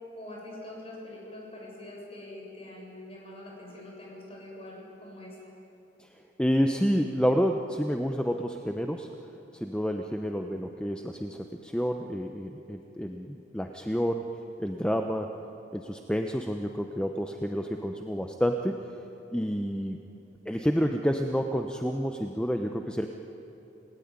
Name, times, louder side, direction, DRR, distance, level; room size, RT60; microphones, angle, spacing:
voice 1, 0.1-5.5, left 1 dB, 35° left, -2 dB, 7.3 m, -44 dB
voice 2, 6.4-9.1 9.5-14.3 14.6-15.3 15.7-18.8 19.3-20.0 20.5-23.1, equal, 5° left, 4 dB, 0.9 m, -29 dB
30.0 x 17.5 x 9.7 m, 2.9 s
head